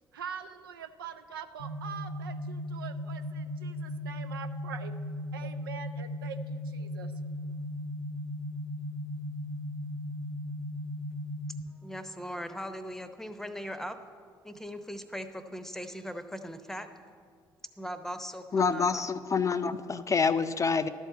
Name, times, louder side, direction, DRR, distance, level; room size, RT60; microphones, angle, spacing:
voice 1, 0.1-4.9 5.3-7.1, right 7 dB, 80° right, 8 dB, 0.4 m, -43 dB
sound 1, 1.6-11.6, left 1 dB, 80° left, 0.9 m, -37 dB
voice 2, 11.8-14.0 14.4-16.9 17.8-19.1, equal, 5° left, 9 dB, 0.8 m, -39 dB
voice 3, 18.5-20.9, left 5 dB, 25° left, 11 dB, 0.5 m, -27 dB
12.0 x 4.5 x 8.2 m, 2.1 s
figure-of-eight pair, 45°, 12 cm